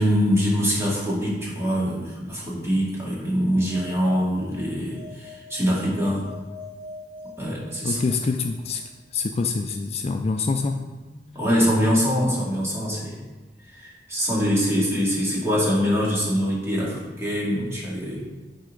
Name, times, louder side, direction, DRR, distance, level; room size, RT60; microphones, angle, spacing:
voice 1, 0.0-6.3 7.4-8.0 11.3-13.2 13.7-18.2, equal, 15° right, -6 dB, 2.3 m, -24 dB
sound 1, 3.5-8.3, left 3 dB, 35° right, 1.5 m, -43 dB
voice 2, 7.8-8.8 9.1-10.8, left 4 dB, 35° left, 6 dB, 0.3 m, -25 dB
9.3 x 4.6 x 3.8 m, 1.2 s
head